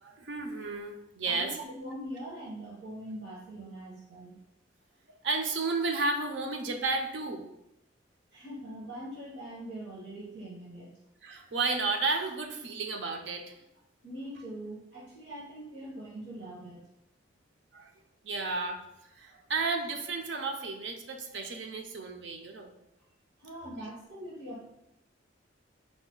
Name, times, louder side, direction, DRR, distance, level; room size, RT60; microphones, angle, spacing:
voice 1, 0.0-1.6 5.2-7.5 11.2-13.6 17.7-17.9 18.2-22.7, right 3 dB, 65° right, 4 dB, 0.5 m, -32 dB
voice 2, 1.2-4.4 8.3-10.9 14.0-16.8 23.4-24.7, right 1 dB, 90° right, -6 dB, 1.2 m, -42 dB
4.9 x 2.2 x 3.8 m, 0.85 s
head